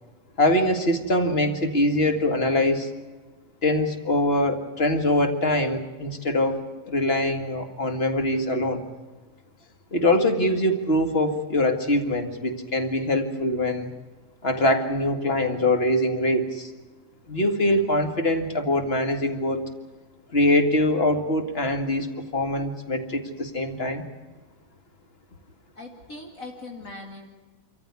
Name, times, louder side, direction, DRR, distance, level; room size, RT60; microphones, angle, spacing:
voice 1, 0.4-2.9 3.6-8.8 9.9-13.9 14.4-16.7 17.3-19.6 20.3-24.0, left 1 dB, 40° left, 6 dB, 2.2 m, -23 dB
voice 2, 25.8-27.2, left 2 dB, 60° left, 0 dB, 2.7 m, -40 dB
26.5 x 14.5 x 9.6 m, 1.3 s
omnidirectional pair, 1.7 m